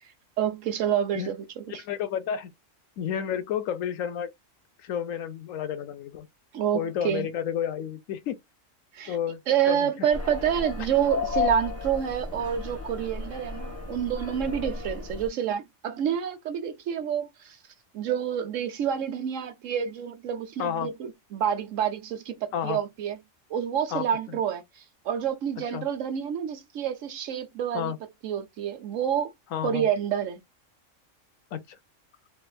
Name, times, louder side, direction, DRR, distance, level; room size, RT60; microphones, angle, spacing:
voice 1, 0.4-1.8 6.5-7.3 8.9-9.2 9.5-17.6 17.9-23.2 23.5-27.9 28.2-29.3 29.6-30.4, right 9 dB, 75° right, 1.1 m, -28 dB
voice 2, 1.7-2.5 3.0-4.3 4.8-6.3 6.7-8.4 9.1-10.1 10.8-10.9 20.6-20.9 22.5-22.8 23.9-24.4 25.6-25.9 27.7-28.0 29.5-29.9 31.5-31.8, left 9 dB, 80° left, 1.1 m, -31 dB
sound 1, 10.1-15.3, left 5 dB, 10° right, 1.2 m, -33 dB
3.5 x 3.2 x 2.3 m
omnidirectional pair, 1.3 m